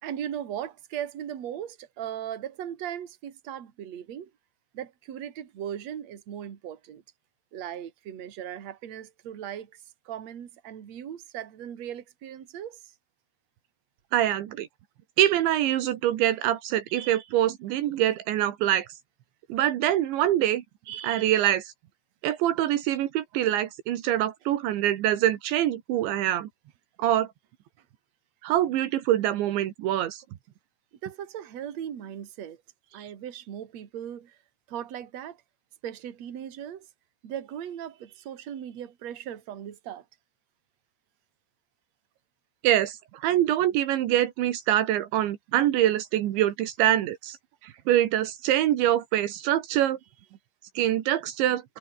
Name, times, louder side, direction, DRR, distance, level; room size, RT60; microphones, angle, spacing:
voice 1, 0.0-4.3 4.7-7.0 7.5-9.7 10.0-12.8 31.0-32.6 32.9-34.4 34.7-35.4 35.8-36.9 37.2-40.0, right 10 dB, 45° right, 2.9 m, -38 dB
voice 2, 14.1-14.7 15.2-18.9 19.5-21.7 22.2-26.5 27.0-27.3 28.4-30.2 33.0-33.1 42.6-47.4 47.6-50.0 50.8-51.6, right 12 dB, 80° right, 3.9 m, -25 dB
omnidirectional pair, 5.3 m